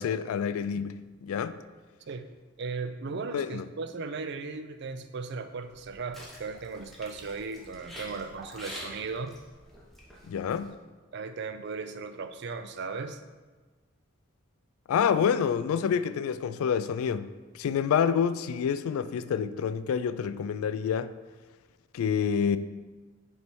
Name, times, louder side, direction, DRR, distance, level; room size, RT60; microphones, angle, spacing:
voice 1, 0.0-1.6 3.3-3.7 10.3-10.7 14.9-21.1 21.9-22.6, left 7 dB, 85° left, 0.3 m, -28 dB
voice 2, 2.6-9.3 11.1-13.2, right 4 dB, 55° right, 0.4 m, -37 dB
sound 1, 5.6-10.7, equal, ahead, 0.9 m, -47 dB
6.8 x 3.3 x 4.6 m
head